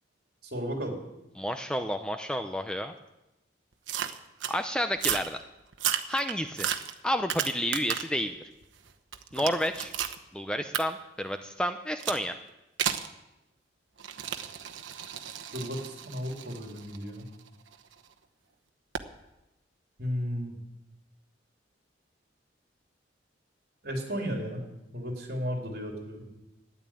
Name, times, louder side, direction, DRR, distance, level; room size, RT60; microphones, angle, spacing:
voice 1, 0.5-1.0 15.5-17.3 20.0-20.6 23.8-24.6 24.9-26.2, equal, 55° right, 1 dB, 3.6 m, -34 dB
voice 2, 1.4-2.9 4.5-5.4 6.1-6.7 7.0-8.4 9.3-9.9 10.3-12.3, equal, 5° left, 7 dB, 0.6 m, -30 dB
sound 1, 3.9-4.6 5.0-5.3 5.7-8.2 8.6-10.2 10.7-10.8 12.0-12.2 12.8-13.1 14.0-17.9 18.9-19.1, right 9 dB, 90° right, 1.0 m, -33 dB
12.5 x 10.5 x 8.9 m, 0.94 s
head